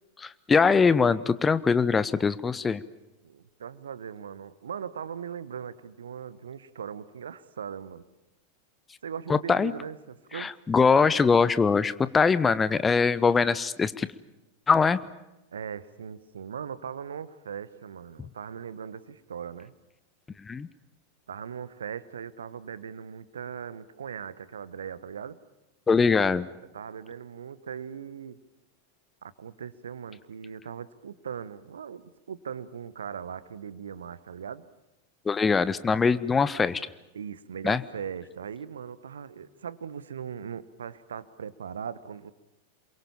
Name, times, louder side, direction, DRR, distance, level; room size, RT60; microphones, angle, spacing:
voice 1, 0.2-2.8 9.3-9.7 10.3-14.1 14.7-15.0 20.4-20.7 25.9-26.5 35.2-36.8 37.6-37.8, left 5 dB, 15° left, 16 dB, 0.8 m, -22 dB
voice 2, 3.2-8.0 9.0-10.5 15.5-19.7 21.3-25.4 26.7-28.4 29.2-34.6 37.1-42.3, right 7 dB, 65° right, 17 dB, 1.1 m, -39 dB
27.5 x 23.0 x 7.3 m, 0.98 s
figure-of-eight pair, 90°, 0 cm